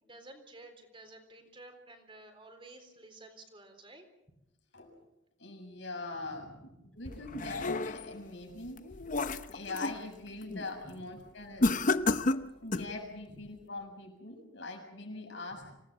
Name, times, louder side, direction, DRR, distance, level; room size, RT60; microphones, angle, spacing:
voice 1, 0.0-4.0 6.3-6.8 9.0-9.1 10.8-11.2 15.6-15.8, right 2 dB, 25° right, 5 dB, 3.8 m, -53 dB
voice 2, 5.4-6.5 6.9-8.9 9.5-11.8 12.6-15.7, left 2 dB, 65° left, 2 dB, 7.2 m, -42 dB
sound 1, 7.1-8.2 8.7-10.0 10.4-10.7 11.6-13.0, left 2 dB, 40° left, 0.8 m, -31 dB
27.0 x 18.0 x 7.4 m, 0.90 s
head